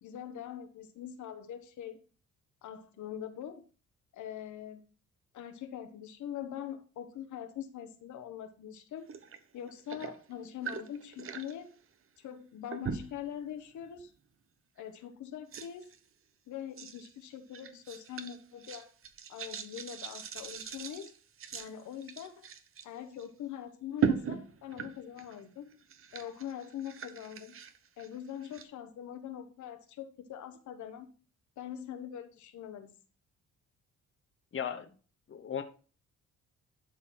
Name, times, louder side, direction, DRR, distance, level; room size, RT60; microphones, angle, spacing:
voice 1, 0.0-2.0 2.6-3.6 4.1-4.8 5.3-9.1 9.5-11.8 12.2-14.1 14.8-15.9 16.5-18.9 19.3-21.1 21.5-22.5 22.8-25.8 26.1-27.6 28.0-31.1 31.6-32.9, left 9 dB, 75° left, 7 dB, 1.2 m, -43 dB
sound 1, 9.1-9.4 9.7-11.5 12.7-13.3 13.8-14.0 14.8-14.9 15.5-16.0 16.8-17.1 17.5-22.8 23.2-23.3 24.0-25.4 25.7-28.6, right 6 dB, 45° right, 0.9 m, -38 dB
voice 2, 34.5-34.9 35.3-35.6, left 8 dB, 45° left, 7 dB, 1.0 m, -36 dB
11.5 x 4.1 x 4.3 m, 0.37 s
cardioid pair, 90°, 30 cm